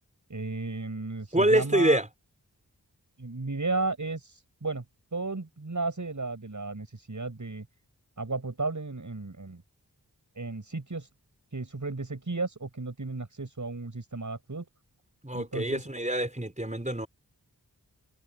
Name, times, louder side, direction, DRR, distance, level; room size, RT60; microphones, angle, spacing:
voice 1, 0.3-2.0 3.2-4.8 5.1-7.7 8.2-9.6 10.4-11.1 11.5-14.7 15.3-15.9, right 3 dB, 55° right, 7.3 m, -34 dB
voice 2, 1.3-2.1 15.2-17.1, right 1 dB, 20° right, 5.1 m, -25 dB
cardioid pair, 45°, 37 cm